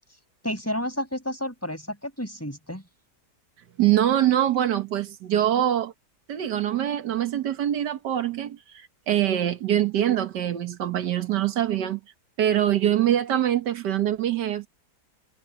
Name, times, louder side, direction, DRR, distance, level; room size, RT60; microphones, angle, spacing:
voice 1, 0.4-2.8, equal, 10° left, 5.6 m, -31 dB
voice 2, 3.8-5.9 6.3-12.0 12.4-14.7, right 11 dB, 85° right, 1.7 m, -24 dB
omnidirectional pair, 1.8 m